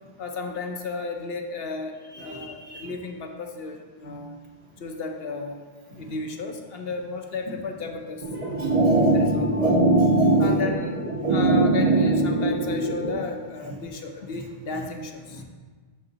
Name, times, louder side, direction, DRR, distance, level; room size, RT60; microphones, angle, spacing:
voice 1, 0.2-4.4 4.8-5.7 6.0-8.2 9.1-9.8 10.4-15.4, left 4 dB, 65° left, 4 dB, 0.9 m, -33 dB
voice 2, 2.1-2.9 5.9-6.1 8.6-9.2 10.3-10.4 15.3-15.4, right 1 dB, 70° right, 0 dB, 1.4 m, -39 dB
sound 1, 8.2-13.2, right 2 dB, 35° right, 0.9 m, -21 dB
10.5 x 3.8 x 3.9 m, 1.4 s
omnidirectional pair, 1.1 m